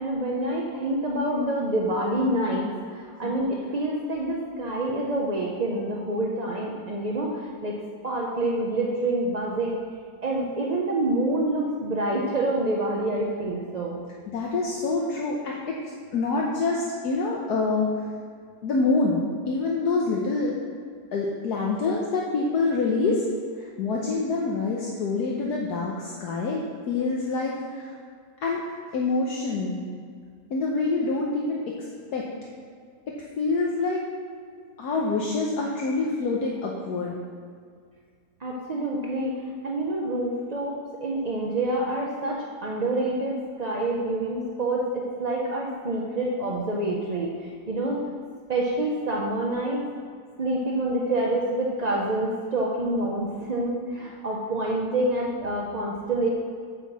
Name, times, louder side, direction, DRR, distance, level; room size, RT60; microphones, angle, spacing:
voice 1, 0.0-7.8 8.0-9.8 10.2-14.0 38.4-48.0 48.5-49.9 50.4-56.3, right 1 dB, 40° right, -2 dB, 0.5 m, -27 dB
voice 2, 14.3-15.8 16.1-17.9 18.6-19.2 19.5-20.5 21.1-23.2 23.6-26.6 26.9-27.9 28.4-28.6 28.9-29.8 30.5-31.8 32.1-32.3 33.4-34.0 34.8-37.2, left 3 dB, 65° left, -2 dB, 1.4 m, -26 dB
7.3 x 5.8 x 7.2 m, 2.1 s
omnidirectional pair, 1.9 m